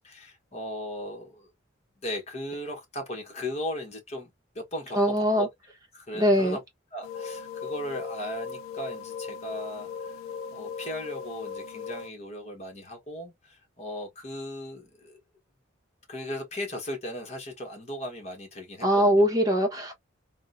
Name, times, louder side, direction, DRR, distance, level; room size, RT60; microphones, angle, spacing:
voice 1, 0.0-1.5 2.0-5.0 5.4-5.5 5.9-6.6 6.9-10.2 10.5-15.2 16.1-19.2, left 1 dB, 30° left, 1.1 m, -37 dB
voice 2, 4.9-5.5 6.1-6.6 18.8-19.9, equal, 15° right, 0.9 m, -22 dB
sound 1, 7.0-12.1, left 6 dB, 90° left, 0.4 m, -38 dB
3.5 x 2.1 x 2.4 m
head